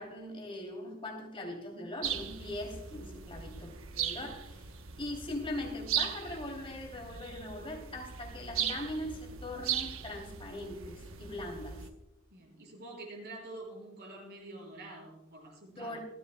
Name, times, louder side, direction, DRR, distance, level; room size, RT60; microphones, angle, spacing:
voice 1, 0.0-4.7 5.0-11.8 15.7-16.0, left 1 dB, 25° left, 2 dB, 2.8 m, -41 dB
sound 1, 2.0-11.9, right 8 dB, 80° right, 1.0 m, -38 dB
voice 2, 12.3-16.0, right 2 dB, 55° right, -1 dB, 5.7 m, -47 dB
27.5 x 9.9 x 2.2 m, 0.93 s
head